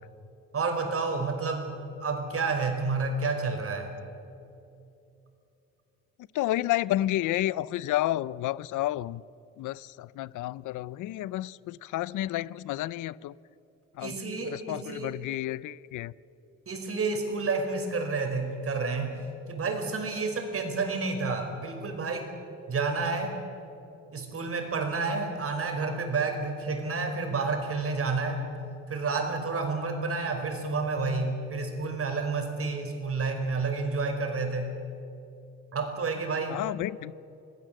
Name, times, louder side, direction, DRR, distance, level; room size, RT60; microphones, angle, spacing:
voice 1, 0.5-3.9 14.0-15.1 16.7-19.1 19.5-22.3 22.7-23.4 24.1-28.4 28.9-34.7 35.7-36.6, right 4 dB, 50° right, 5.0 m, -30 dB
voice 2, 6.3-9.2 9.6-13.3 13.9-14.2 14.4-16.1 36.5-37.1, left 15 dB, 80° left, 0.6 m, -31 dB
27.0 x 19.0 x 7.6 m
cardioid pair, 90°, 30 cm